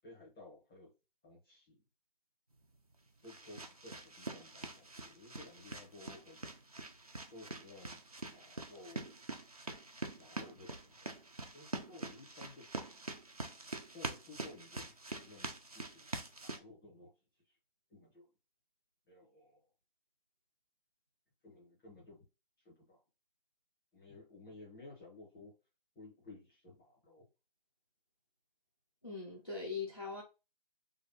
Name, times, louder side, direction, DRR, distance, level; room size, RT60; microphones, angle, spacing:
voice 1, 0.0-0.9 1.2-1.8 3.2-6.4 7.3-9.2 10.1-11.1 11.5-12.7 13.9-14.9 15.2-15.5 15.7-16.1 16.4-17.1 17.4-17.5 17.9-18.3 19.1-19.7 21.4-22.2 22.6-23.0 23.9-25.5 25.9-27.3, left 2 dB, 5° left, 0.8 m, -55 dB
sound 1, 2.6-16.6, right 2 dB, 40° right, 0.5 m, -45 dB
voice 2, 29.0-30.2, left 4 dB, 25° left, 0.5 m, -41 dB
3.3 x 2.6 x 3.9 m
hypercardioid pair, 175°, 30 cm